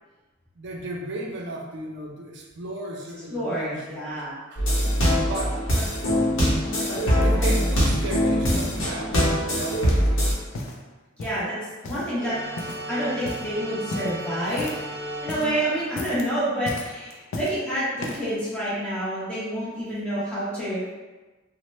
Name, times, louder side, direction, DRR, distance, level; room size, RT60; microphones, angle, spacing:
voice 1, 0.6-4.2 4.5-4.9 5.2-5.6 7.2-10.4 15.4-15.6, right 1 dB, 55° right, 0 dB, 0.5 m, -34 dB
voice 2, 3.3-4.4 6.7-7.5 11.2-11.6 11.8-12.4 12.9-14.8 15.2-20.9, right 1 dB, 5° left, -11 dB, 0.9 m, -28 dB
sound 1, 4.6-10.3, equal, 65° left, 0.8 m, -22 dB
sound 2, 6.1-6.8 7.2-7.5 7.9-8.8 9.2-10.2 10.4-10.8 11.2-11.5 11.8-12.3 12.6-12.9 13.2-13.5 13.9-14.9 15.2-15.6 15.9-16.3 16.7-17.6 18.0-18.4 19.0-19.1, left 2 dB, 85° left, 0.4 m, -36 dB
sound 3, 12.2-16.7, right 1 dB, 30° right, 1.0 m, -36 dB
3.0 x 2.1 x 3.0 m, 1.2 s
head